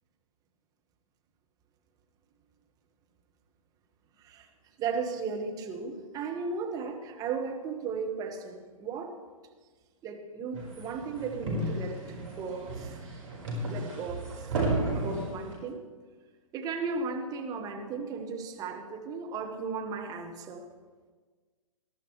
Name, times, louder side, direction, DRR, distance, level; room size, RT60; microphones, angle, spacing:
voice 1, 4.8-9.2 10.0-13.0 13.7-14.5 14.9-15.9 16.5-20.6, right 5 dB, 20° right, 2 dB, 1.5 m, -35 dB
sound 1, 10.5-15.6, right 2 dB, 60° right, 4.6 m, -33 dB
21.0 x 12.0 x 3.2 m, 1.4 s
figure-of-eight pair, 120°, 19 cm